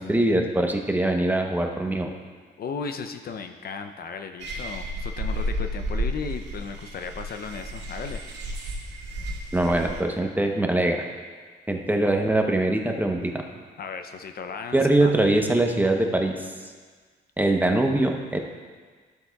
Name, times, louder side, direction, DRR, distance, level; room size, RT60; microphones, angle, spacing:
voice 1, 0.0-2.1 9.5-11.1 11.7-13.4 14.7-16.4 17.4-18.4, right 1 dB, 10° right, 3 dB, 0.8 m, -22 dB
voice 2, 2.6-8.2 13.8-15.1, left 5 dB, 50° left, 7 dB, 0.5 m, -35 dB
sound 1, 4.4-10.0, equal, 60° right, 1.9 m, -32 dB
12.5 x 7.5 x 2.3 m, 1.5 s
cardioid pair, 90°, 20 cm